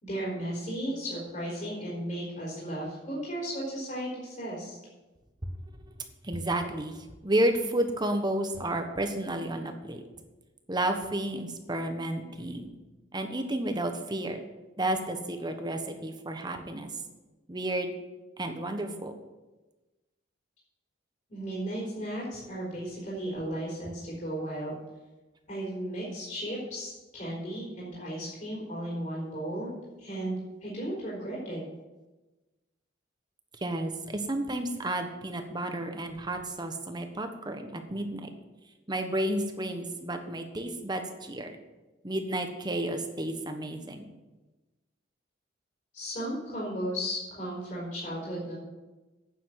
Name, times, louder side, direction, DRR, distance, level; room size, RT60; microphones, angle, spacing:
voice 1, 0.0-4.8 21.3-24.8 25.5-29.7 30.0-31.6 45.9-48.6, right 1 dB, 40° left, -6 dB, 4.0 m, -35 dB
voice 2, 6.2-7.0 7.2-10.0 10.7-12.7 13.1-14.4 14.8-16.9 17.5-17.9 18.4-19.2 33.6-38.3 38.9-41.5 42.0-44.0, right 1 dB, 20° right, 6 dB, 1.1 m, -31 dB
9.5 x 7.0 x 7.8 m, 1.1 s
head